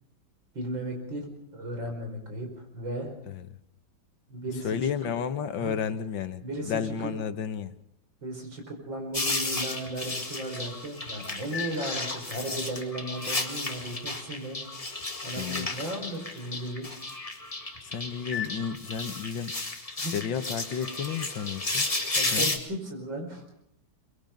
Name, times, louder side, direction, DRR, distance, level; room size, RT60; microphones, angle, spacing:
voice 1, 0.5-3.1 4.3-4.7 5.6-5.7 6.4-6.7 8.2-14.6 14.8-15.0 15.2-16.9 20.0-20.1 22.2-23.4, right 1 dB, 70° right, 3 dB, 5.9 m, -35 dB
voice 2, 4.6-7.8 15.4-15.7 17.8-19.6 20.1-21.9 22.3-22.6, left 7 dB, 75° left, 11 dB, 1.9 m, -32 dB
sound 1, 9.1-22.6, left 2 dB, 20° left, 1.8 m, -33 dB
24.0 x 22.0 x 5.3 m, 0.73 s
omnidirectional pair, 2.1 m